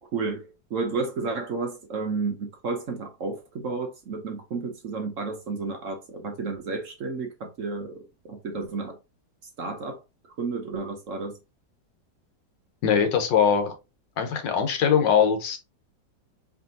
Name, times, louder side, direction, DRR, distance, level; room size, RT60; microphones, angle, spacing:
voice 1, 0.0-9.0 9.6-10.0 10.4-11.4, right 4 dB, 55° right, 1.0 m, -32 dB
voice 2, 12.8-13.7 14.2-15.6, left 7 dB, 85° left, 1.6 m, -21 dB
4.6 x 3.3 x 2.7 m
omnidirectional pair, 1.9 m